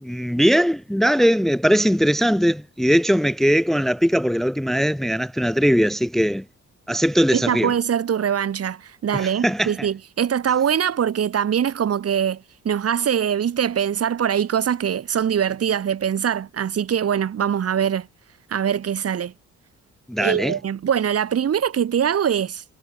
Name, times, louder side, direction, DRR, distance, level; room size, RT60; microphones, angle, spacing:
voice 1, 0.0-6.4 6.9-7.7 9.1-9.9 20.1-20.6, equal, ahead, 0.9 m, -20 dB
voice 2, 7.3-18.1 18.5-19.3 20.2-22.6, right 8 dB, 50° right, 2.4 m, -23 dB
cardioid pair, 90°, 30 cm